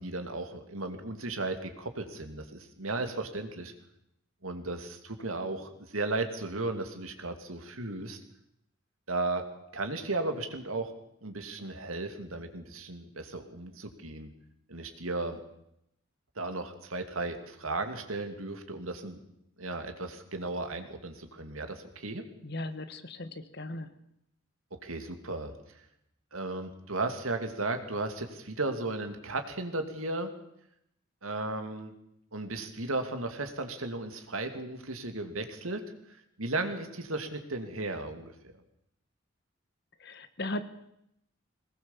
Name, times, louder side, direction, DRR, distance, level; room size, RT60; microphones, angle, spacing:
voice 1, 0.0-3.7 4.4-8.2 9.1-9.5 9.7-10.9 11.2-14.3 14.7-15.4 16.4-19.2 19.6-22.2 24.7-25.5 26.3-30.3 31.2-31.9 32.3-35.8 36.4-38.3, right 2 dB, 85° right, 7 dB, 2.7 m, -35 dB
voice 2, 22.4-24.0 40.0-40.7, left 1 dB, 50° left, 11 dB, 1.4 m, -37 dB
22.0 x 19.5 x 7.4 m, 0.79 s
head